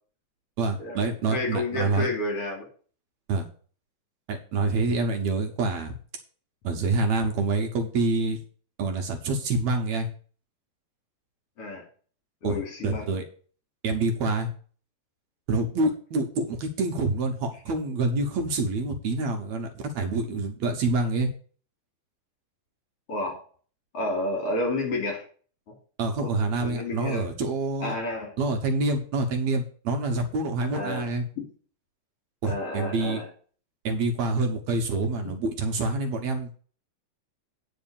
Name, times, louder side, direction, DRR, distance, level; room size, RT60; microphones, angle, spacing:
voice 1, 0.6-2.1 3.3-3.5 4.3-5.9 6.6-8.4 8.8-10.1 12.4-12.6 12.8-13.3 13.8-14.5 15.5-21.3 26.0-27.9 28.4-31.2 32.4-33.2 33.8-36.5, right 3 dB, 65° right, 4 dB, 2.2 m, -27 dB
voice 2, 1.3-2.7 11.6-11.9 12.4-13.1 23.1-23.4 23.9-25.2 25.7-25.8 26.2-27.3 27.8-28.3 30.7-31.1 31.4-31.5 32.5-33.3, left 2 dB, 50° left, 1 dB, 3.8 m, -30 dB
9.3 x 4.9 x 7.2 m, 0.43 s
omnidirectional pair, 3.5 m